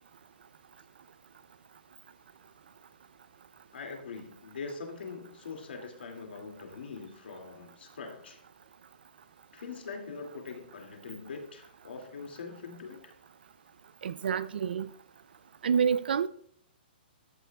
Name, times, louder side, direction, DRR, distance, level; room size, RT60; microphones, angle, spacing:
voice 1, 3.7-8.4 9.5-13.1, left 4 dB, 80° left, 2.3 m, -42 dB
voice 2, 14.0-14.9 15.6-16.3, right 7 dB, 70° right, 0.4 m, -27 dB
13.5 x 9.0 x 2.3 m
hypercardioid pair, 175°, 6 cm